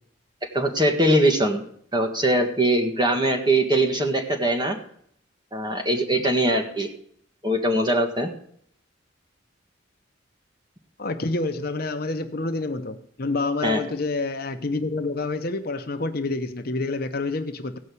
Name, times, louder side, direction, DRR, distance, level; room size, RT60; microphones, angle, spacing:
voice 1, 0.5-1.7 1.9-4.8 5.5-6.9 7.4-8.3 13.6-13.8, right 1 dB, 20° right, 3 dB, 1.6 m, -21 dB
voice 2, 11.0-17.8, left 3 dB, 45° left, 7 dB, 0.9 m, -28 dB
16.5 x 5.5 x 8.4 m, 0.67 s
head